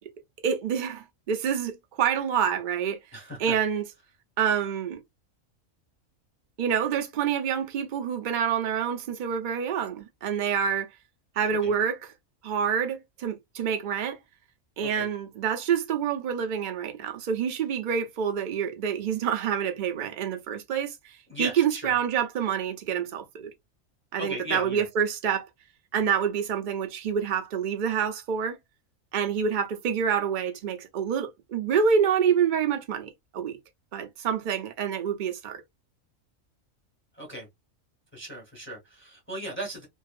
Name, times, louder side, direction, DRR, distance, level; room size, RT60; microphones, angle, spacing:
voice 1, 0.4-3.0 3.4-3.8 4.4-5.0 6.6-10.9 11.4-12.0 12.4-14.2 14.8-21.1 21.4-23.5 24.1-25.5 25.9-28.6 29.1-33.6 33.9-35.6, right 7 dB, 50° right, 0.6 m, -27 dB
voice 2, 3.1-3.5 11.6-11.7 14.8-15.1 21.3-21.9 24.2-24.8 37.1-37.5 38.1-39.9, right 1 dB, 10° left, 1.0 m, -36 dB
2.7 x 2.4 x 2.4 m
omnidirectional pair, 1.4 m